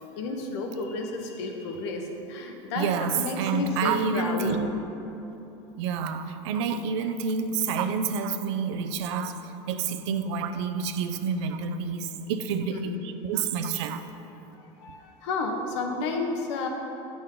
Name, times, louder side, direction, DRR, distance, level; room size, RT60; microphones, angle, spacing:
voice 1, 0.2-2.9 3.1-4.6 12.7-13.0 14.3-16.7, left 3 dB, 85° left, 3 dB, 1.0 m, -32 dB
voice 2, 2.8-4.7 5.8-14.0, right 5 dB, 85° right, 9 dB, 0.5 m, -28 dB
9.4 x 6.2 x 3.8 m, 3.0 s
cardioid pair, 175°, 14 cm